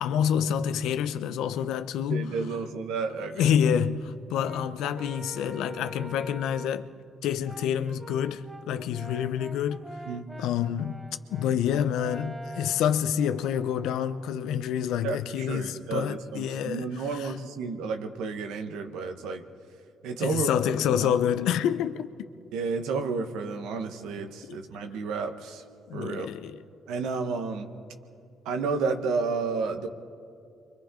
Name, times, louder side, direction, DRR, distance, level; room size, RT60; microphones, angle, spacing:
voice 1, 0.0-2.3 3.4-6.9 7.2-9.8 10.4-11.0 11.3-17.3 20.2-22.1 24.5-24.8 25.9-26.6, left 9 dB, 85° left, 0.7 m, -28 dB
voice 2, 2.1-3.5 10.1-10.3 15.0-19.4 20.0-20.5 21.0-21.2 22.5-25.6 25.9-26.3 26.9-27.7 28.4-29.9, right 4 dB, 85° right, 1.3 m, -31 dB
Brass instrument, 4.3-6.9 7.4-14.4, right 2 dB, 15° right, 0.7 m, -45 dB
28.5 x 24.5 x 3.9 m
cardioid pair, 85°, 0 cm